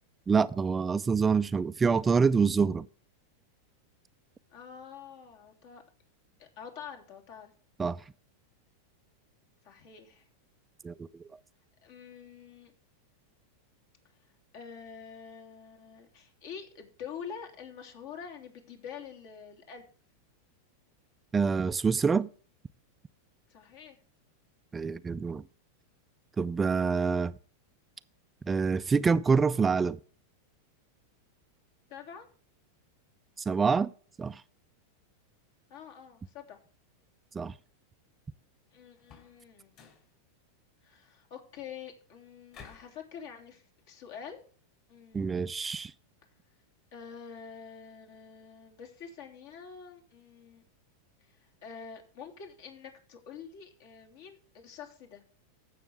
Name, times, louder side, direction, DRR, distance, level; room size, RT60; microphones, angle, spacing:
voice 1, 0.3-2.9 7.8-8.0 10.8-11.1 21.3-22.3 24.7-25.4 26.4-27.4 28.4-30.0 33.5-33.9 34.2-34.4 37.3-37.5 45.1-45.9, right 5 dB, 20° right, 0.4 m, -26 dB
voice 2, 4.5-5.8 6.4-7.5 9.6-10.3 11.8-12.7 14.5-19.8 23.5-24.0 31.9-32.3 35.7-36.6 38.7-39.9 40.8-44.4 44.9-45.5 46.9-50.6 51.2-55.2, left 7 dB, 60° left, 3.3 m, -46 dB
sound 1, 39.0-39.4 39.7-40.1 42.5-43.0, left 6 dB, 45° left, 4.9 m, -52 dB
15.5 x 6.4 x 3.5 m
hypercardioid pair, 110°, 0 cm